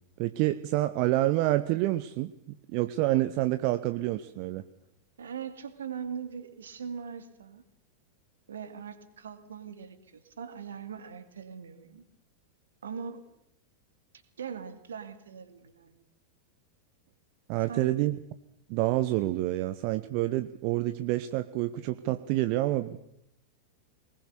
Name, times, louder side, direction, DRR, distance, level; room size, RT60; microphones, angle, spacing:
voice 1, 0.2-4.6 17.5-18.2 18.7-23.0, right 16 dB, 45° right, 12 dB, 0.8 m, -28 dB
voice 2, 5.2-7.6 8.5-12.0 12.8-13.2 14.4-16.0 17.7-17.9, right 7 dB, 65° right, 10 dB, 2.4 m, -41 dB
23.0 x 20.0 x 6.9 m, 0.77 s
figure-of-eight pair, 90°, 0 cm